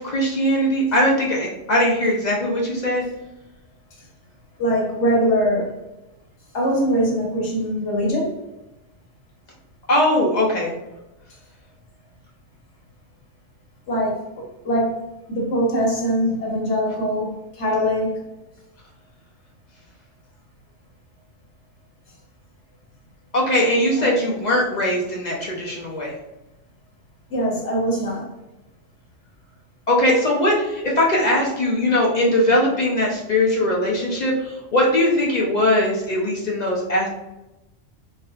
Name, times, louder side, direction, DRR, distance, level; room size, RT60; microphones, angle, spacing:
voice 1, 0.0-3.0 9.9-10.7 23.3-26.1 29.9-37.1, left 1 dB, 50° left, -3 dB, 0.6 m, -20 dB
voice 2, 4.6-5.7 6.5-8.3 13.9-14.2 14.6-15.0 15.3-18.2 24.0-24.1 27.3-28.3, equal, 70° left, -3 dB, 1.2 m, -22 dB
3.2 x 2.7 x 2.3 m, 0.97 s
omnidirectional pair, 1.3 m